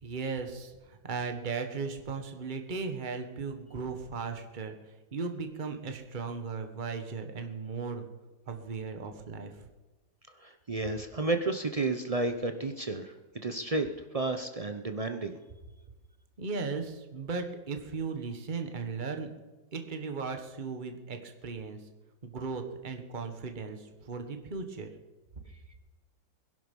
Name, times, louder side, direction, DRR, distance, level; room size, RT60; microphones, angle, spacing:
voice 1, 0.0-8.0 8.5-9.7 16.4-19.3 19.7-21.9 22.2-24.9, right 4 dB, 25° right, 5 dB, 1.4 m, -37 dB
voice 2, 10.4-13.9 14.1-15.4, right 3 dB, 70° right, 7 dB, 0.3 m, -32 dB
21.0 x 11.5 x 5.4 m, 1.2 s
omnidirectional pair, 2.1 m